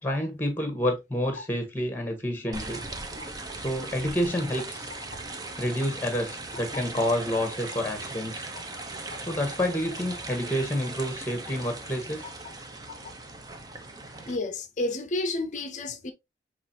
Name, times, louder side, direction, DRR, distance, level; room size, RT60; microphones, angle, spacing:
voice 1, 0.0-2.8 3.5-4.9 5.6-8.4 9.2-12.2, equal, 10° left, 1.1 m, -29 dB
sound 1, 2.5-14.4, right 2 dB, 20° right, 0.6 m, -39 dB
voice 2, 14.3-16.1, left 2 dB, 40° left, 0.6 m, -30 dB
5.9 x 3.1 x 2.7 m
head